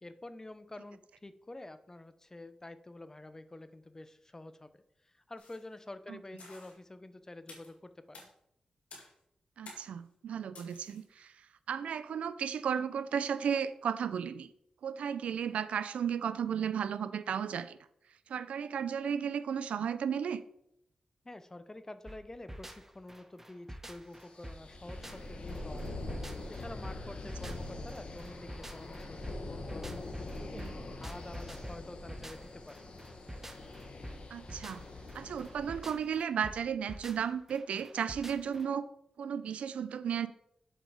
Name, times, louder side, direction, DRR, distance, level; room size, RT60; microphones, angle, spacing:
voice 1, 0.0-8.3 21.2-26.0 26.3-30.7 31.0-32.8, left 2 dB, 25° left, 12 dB, 0.7 m, -48 dB
sound 1, 5.4-5.7 6.4-6.8 7.5-7.8 8.1-8.3 8.9-9.2 9.7-10.0 10.6-11.1, left 3 dB, 85° left, 2.3 m, -52 dB
voice 2, 9.6-11.3 11.7-14.5 14.8-17.8 18.3-20.4 27.4-27.5 30.6-30.7 34.3-34.8 35.1-38.9 39.2-40.3, right 7 dB, 85° right, 14 dB, 0.4 m, -34 dB
sound 2, 22.1-38.7, right 1 dB, 15° right, 1.1 m, -48 dB
sound 3, 24.3-36.1, left 2 dB, 60° left, 1.3 m, -43 dB
7.2 x 5.4 x 4.9 m, 0.76 s
cardioid pair, 45°, 2 cm